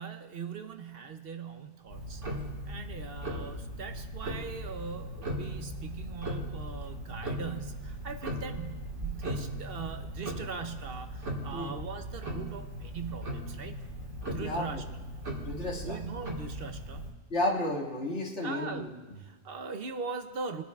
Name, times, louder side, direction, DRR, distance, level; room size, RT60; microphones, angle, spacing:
voice 1, 0.0-2.2 2.7-13.8 14.2-14.8 15.8-17.1 18.4-18.9 19.2-20.6, right 5 dB, 60° right, 7 dB, 0.8 m, -40 dB
Tick-tock, 1.9-17.1, equal, 80° right, 2.0 m, -38 dB
voice 2, 14.4-14.8 15.5-16.0 17.3-18.9, left 1 dB, 75° left, -2 dB, 2.2 m, -32 dB
22.5 x 10.5 x 2.3 m, 1.2 s
omnidirectional pair, 1.2 m